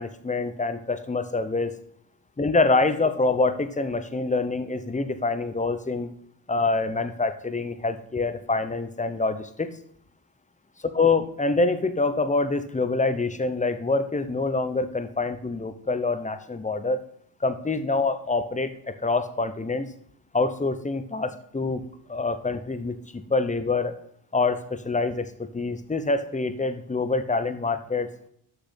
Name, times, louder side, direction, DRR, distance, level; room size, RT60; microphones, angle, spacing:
voice 1, 0.0-1.8 2.4-6.1 6.5-9.7 10.9-17.0 17.4-19.9 20.3-23.9 24.3-28.1, left 3 dB, 15° left, 10 dB, 0.8 m, -26 dB
6.8 x 6.0 x 5.8 m, 0.66 s
cardioid pair, 65°, 46 cm